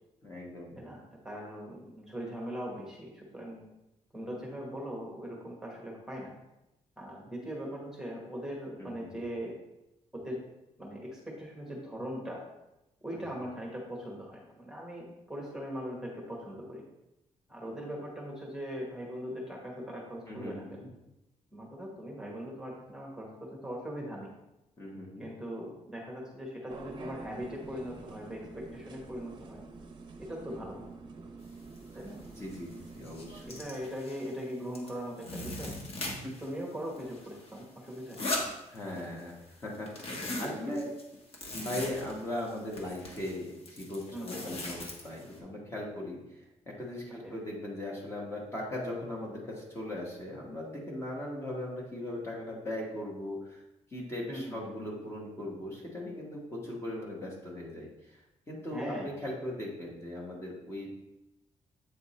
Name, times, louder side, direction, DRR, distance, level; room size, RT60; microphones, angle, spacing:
voice 1, 0.2-0.8 8.8-9.2 13.1-13.4 20.3-20.9 24.8-25.3 31.9-32.0 32.4-33.6 36.2-36.3 38.7-39.3 39.6-40.9 41.5-53.6 53.9-58.2 58.5-60.9, left 1 dB, 20° left, -3 dB, 1.2 m, -39 dB
voice 2, 0.8-3.6 4.1-6.3 7.0-9.5 10.1-10.4 10.8-12.4 13.0-16.8 17.5-20.8 21.5-24.3 25.2-29.6 30.2-30.9 31.9-32.2 33.4-35.7 36.4-38.2 39.0-39.1 40.4-40.5 44.1-44.5 47.2-47.3 54.3-54.7 58.7-59.1, equal, 5° right, -3 dB, 1.2 m, -40 dB
sound 1, 26.7-33.6, right 3 dB, 40° right, 0.7 m, -47 dB
sound 2, 31.8-31.9 32.2-32.6 32.9-34.4 34.7-36.5 36.8-39.2 39.5-45.4, left 1 dB, 50° left, 1.2 m, -40 dB
7.9 x 3.5 x 4.2 m, 0.91 s
wide cardioid pair, 165°, 13 cm